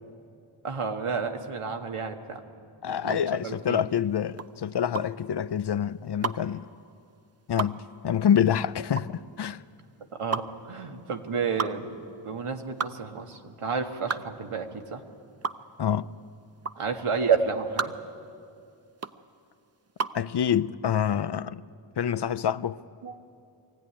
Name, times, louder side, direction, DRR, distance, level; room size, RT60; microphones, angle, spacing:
voice 1, 0.6-2.4 3.0-3.8 10.2-12.0 12.2-15.0 16.8-17.9 23.0-23.2, right 5 dB, 90° right, 1.7 m, -30 dB
voice 2, 2.8-6.7 7.5-7.8 8.0-9.6 15.8-16.1 20.1-21.6 22.0-22.8, left 8 dB, 55° left, 0.6 m, -26 dB
sound 1, 3.0-20.3, right 5 dB, 30° right, 0.6 m, -35 dB
22.5 x 16.0 x 10.0 m
wide cardioid pair, 80°, 50 cm